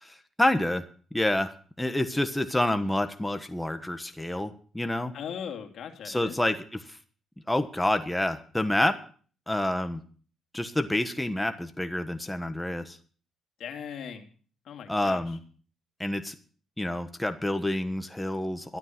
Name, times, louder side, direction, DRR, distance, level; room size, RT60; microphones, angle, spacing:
voice 1, 0.0-0.8 1.1-1.5 1.8-5.1 6.0-7.0 7.5-9.0 9.5-10.0 10.5-13.0 14.9-15.4 16.0-16.3 16.8-18.8, left 1 dB, 10° left, 8 dB, 1.2 m, -28 dB
voice 2, 5.1-6.3 13.6-14.3 14.6-15.4, left 8 dB, 70° left, 5 dB, 2.6 m, -39 dB
13.0 x 12.0 x 5.9 m, 0.43 s
cardioid pair, 90°, 0 cm